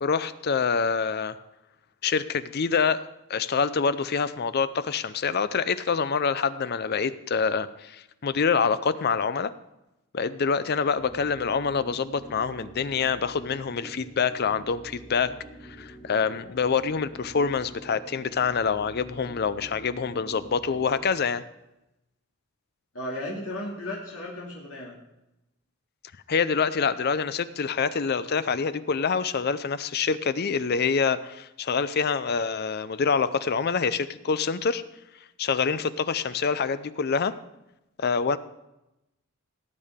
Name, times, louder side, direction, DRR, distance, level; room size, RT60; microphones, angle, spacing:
voice 1, 0.0-1.4 2.0-3.0 3.3-9.5 10.1-15.3 15.6-21.4 26.3-34.8 35.4-37.3 38.0-38.4, left 5 dB, 45° left, 14 dB, 0.5 m, -26 dB
sound 1, 10.8-21.2, right 1 dB, 10° left, 2.9 m, -46 dB
voice 2, 22.9-25.0, left 1 dB, 70° left, -4 dB, 2.3 m, -35 dB
18.0 x 8.5 x 3.6 m, 0.93 s
head